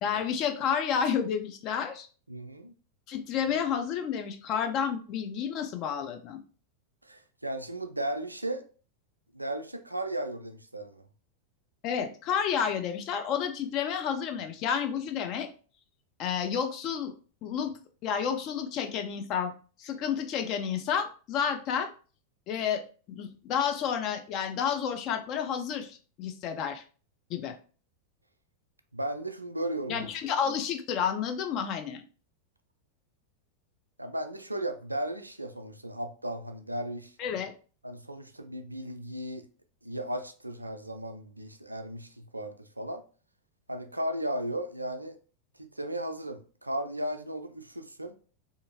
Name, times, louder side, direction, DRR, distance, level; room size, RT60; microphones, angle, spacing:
voice 1, 0.0-2.1 3.1-6.4 11.8-15.5 16.2-17.1 17.4-17.7 18.0-19.5 19.8-21.9 22.5-26.8 27.3-27.6 29.9-32.0 37.2-37.5, left 7 dB, 40° left, 0.4 m, -30 dB
voice 2, 2.3-2.7 7.0-8.7 9.3-11.1 28.9-30.1 34.0-37.2 37.8-39.5 39.8-43.0 43.7-45.2 45.6-48.2, right 1 dB, 85° right, 0.3 m, -35 dB
2.6 x 2.4 x 2.8 m
figure-of-eight pair, 90°, 0 cm